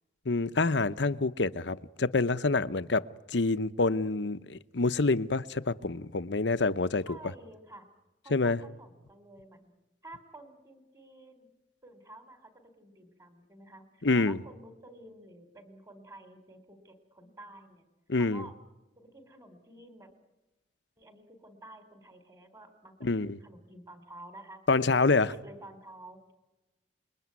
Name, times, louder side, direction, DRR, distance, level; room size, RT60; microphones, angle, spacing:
voice 1, 0.2-7.1 8.3-8.6 14.0-14.4 18.1-18.5 23.0-23.4 24.7-25.3, left 3 dB, 75° left, 0.9 m, -27 dB
voice 2, 7.1-7.9 8.2-9.7 10.0-11.5 11.8-17.9 18.2-18.5 19.0-20.1 21.0-22.9 23.2-24.6 25.0-26.3, right 1 dB, 20° right, 3.4 m, -51 dB
28.5 x 22.0 x 9.6 m
head